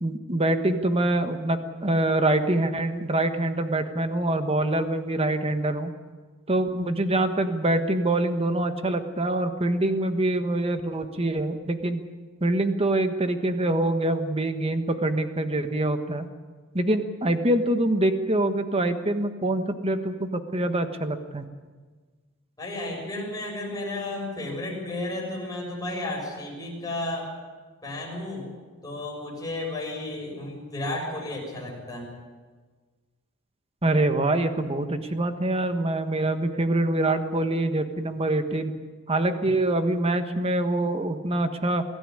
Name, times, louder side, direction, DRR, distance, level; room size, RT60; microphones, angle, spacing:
voice 1, 0.0-5.9 6.5-12.0 12.4-16.3 16.7-21.5 33.8-38.7 39.1-41.8, right 1 dB, 25° right, 8 dB, 1.4 m, -25 dB
voice 2, 22.6-27.3 27.8-28.4 28.8-32.1, left 2 dB, 15° left, -2 dB, 6.7 m, -33 dB
23.0 x 13.5 x 9.9 m, 1.4 s
head